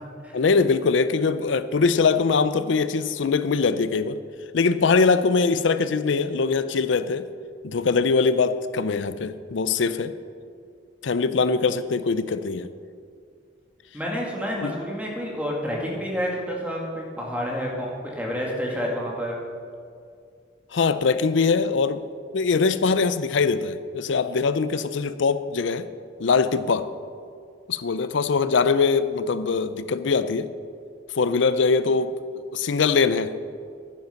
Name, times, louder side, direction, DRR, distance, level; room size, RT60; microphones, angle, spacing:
voice 1, 0.3-4.2 4.5-7.3 7.6-10.1 11.0-12.7 14.6-14.8 20.7-22.0 22.3-25.9 26.2-26.9 27.7-30.5 31.1-32.1 32.5-33.3, left 4 dB, 70° left, 13 dB, 0.5 m, -22 dB
voice 2, 13.9-19.4, equal, 5° right, -2 dB, 2.0 m, -29 dB
10.5 x 10.5 x 5.8 m, 2.3 s
head